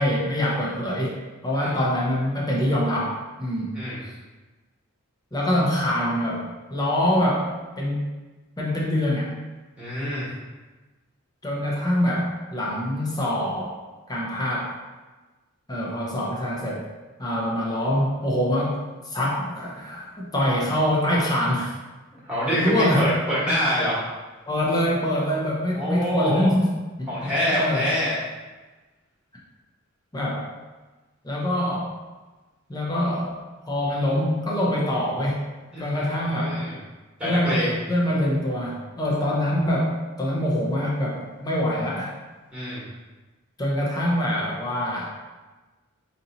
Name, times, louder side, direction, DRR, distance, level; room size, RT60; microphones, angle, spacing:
voice 1, 0.0-3.8 5.3-7.5 7.8-8.1 8.6-9.3 11.4-13.8 14.1-14.7 15.7-16.8 17.2-18.8 19.0-21.7 22.6-23.1 24.5-26.7 27.0-27.1 27.5-27.9 30.1-30.5 31.2-31.9 32.7-33.4 33.7-35.4 35.8-36.6 37.2-37.6 37.9-42.2 43.6-45.1, left 1 dB, 20° left, -4 dB, 0.7 m, -24 dB
voice 2, 9.8-10.3 22.1-24.0 25.7-26.5 27.1-28.1 35.7-36.8 37.2-37.8 42.5-42.8, equal, 5° right, -9 dB, 1.3 m, -26 dB
5.3 x 2.8 x 2.7 m, 1.2 s
head